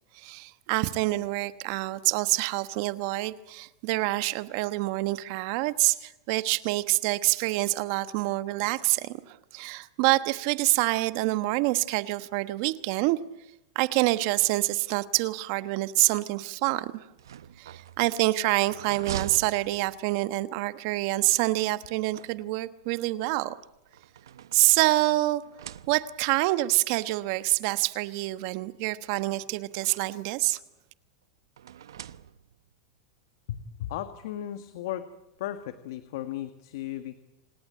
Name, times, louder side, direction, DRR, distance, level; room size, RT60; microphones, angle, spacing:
voice 1, 0.1-13.2 13.7-17.1 17.6-23.5 24.5-25.4 25.9-30.6, right 20 dB, 55° right, 13 dB, 1.2 m, -26 dB
sound 1, 17.1-20.4 21.6-22.8 23.6-25.0 25.4-26.4 27.3-27.4 27.7-27.8 29.0-30.3 31.6-32.7, right 9 dB, 90° right, 0.8 m, -43 dB
voice 2, 33.5-35.1 35.4-37.2, left 12 dB, 70° left, 10 dB, 1.6 m, -35 dB
27.5 x 18.5 x 8.8 m, 0.91 s
hypercardioid pair, 125°, 2 cm